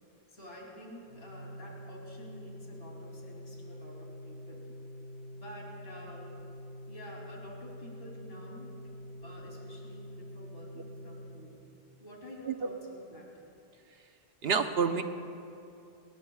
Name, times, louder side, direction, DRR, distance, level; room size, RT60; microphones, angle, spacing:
voice 1, 0.3-4.6 5.3-6.4 6.9-11.6 12.0-13.3, equal, 70° left, -3 dB, 3.3 m, -49 dB
Organ, 1.0-11.9, equal, 45° right, 1.1 m, -46 dB
voice 2, 14.4-15.0, right 5 dB, 75° right, 7 dB, 1.1 m, -28 dB
29.5 x 20.0 x 2.4 m, 2.6 s
omnidirectional pair, 1.0 m